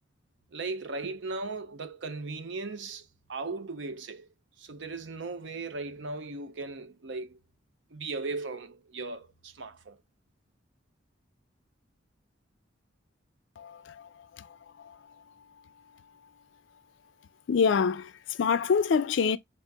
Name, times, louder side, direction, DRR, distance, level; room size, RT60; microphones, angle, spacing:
voice 1, 0.5-4.3 4.6-7.4 7.9-10.0, right 3 dB, 75° right, 0.6 m, -37 dB
voice 2, 13.6-15.2 17.5-19.4, left 6 dB, 80° left, 0.4 m, -27 dB
4.2 x 2.8 x 3.4 m
head